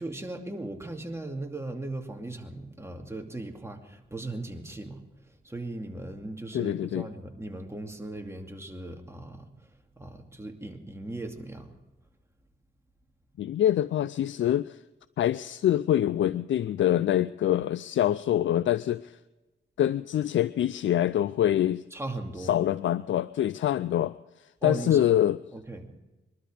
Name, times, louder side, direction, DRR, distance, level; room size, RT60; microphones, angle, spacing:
voice 1, 0.0-5.0 5.4-9.5 10.0-11.7 21.9-22.5 24.6-25.1 25.5-26.0, right 2 dB, 15° right, 3 dB, 2.4 m, -38 dB
voice 2, 6.5-7.1 13.4-14.8 15.2-19.2 19.8-21.8 22.4-24.1 24.6-25.4, left 11 dB, 75° left, 17 dB, 0.4 m, -25 dB
22.5 x 12.5 x 5.0 m, 1.1 s
cardioid pair, 70°, 20 cm